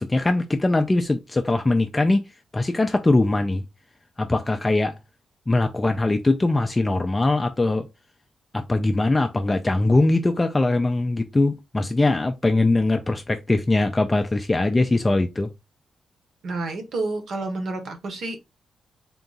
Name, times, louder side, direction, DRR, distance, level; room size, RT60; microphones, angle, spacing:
voice 1, 0.0-2.2 2.5-3.6 4.2-4.9 5.5-7.9 8.5-15.5, left 2 dB, 15° left, 0.3 m, -21 dB
voice 2, 16.4-18.4, right 3 dB, 60° right, 1.0 m, -29 dB
3.7 x 2.3 x 3.9 m
wide cardioid pair, 165°, 0 cm